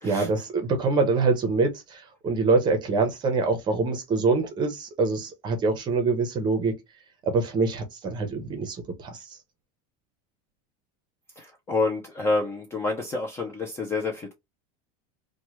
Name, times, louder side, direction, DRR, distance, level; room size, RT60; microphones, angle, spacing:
voice 1, 0.0-6.7 7.3-9.2, right 3 dB, 25° right, 0.7 m, -25 dB
voice 2, 11.4-14.3, left 3 dB, 15° left, 0.4 m, -28 dB
2.9 x 2.2 x 3.0 m
supercardioid pair, 165°, 19 cm